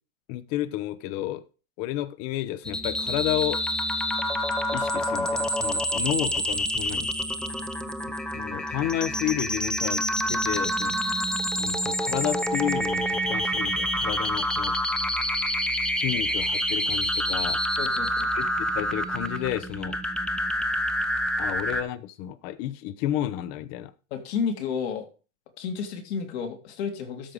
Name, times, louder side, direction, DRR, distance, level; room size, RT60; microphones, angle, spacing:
voice 1, 0.3-1.4 1.8-3.7 4.7-7.1 8.3-11.0 11.6-14.7 15.9-17.6 18.3-20.0 21.4-23.9, left 13 dB, 45° left, 0.8 m, -31 dB
sound 1, 2.6-21.8, equal, ahead, 0.7 m, -27 dB
voice 2, 17.8-18.3 24.1-25.1 25.6-27.3, left 6 dB, 65° left, 2.5 m, -31 dB
13.0 x 4.7 x 5.0 m
hypercardioid pair, 115°, 35 cm